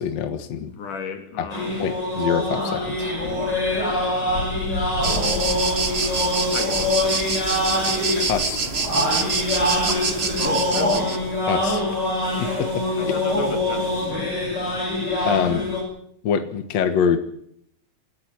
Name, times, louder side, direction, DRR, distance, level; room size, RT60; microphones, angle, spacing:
voice 1, 0.0-0.7 1.4-1.5 1.8-3.1 8.2-8.6 11.5-11.8 12.6-12.7 15.2-15.7 16.2-17.2, left 7 dB, 60° left, 7 dB, 2.5 m, -24 dB
voice 2, 0.6-1.9 3.6-4.6 5.9-7.4 10.4-11.2 13.0-15.1, left 4 dB, 85° left, 5 dB, 4.2 m, -35 dB
sound 1, 1.5-15.8, left 1 dB, 30° left, 8.3 m, -24 dB
sound 2, 5.0-11.2, right 4 dB, 40° right, 0.9 m, -26 dB
27.5 x 11.5 x 8.9 m, 0.68 s
omnidirectional pair, 3.6 m